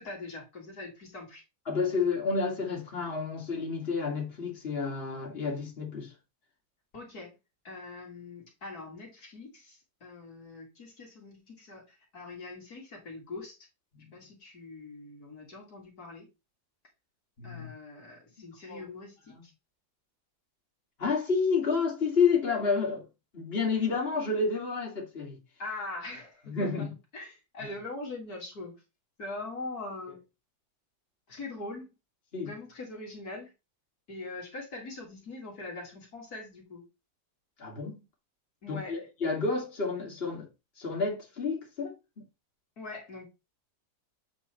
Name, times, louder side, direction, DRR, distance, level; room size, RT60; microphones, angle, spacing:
voice 1, 0.0-1.4 6.9-7.3 7.6-13.6 14.1-16.3 17.4-19.5 25.6-28.7 29.2-30.2 31.3-31.9 32.5-33.5 34.1-36.9 38.6-39.0 42.8-43.3, left 2 dB, 70° left, 2.8 m, -42 dB
voice 2, 1.7-6.1 13.9-14.1 17.4-17.7 18.7-18.8 19.3-19.4 21.0-23.0 23.3-25.4 26.4-26.9 32.3-32.5 37.6-38.0 38.7-40.5 40.8-42.2, left 4 dB, 35° left, 2.6 m, -30 dB
8.2 x 4.3 x 4.4 m
omnidirectional pair, 1.7 m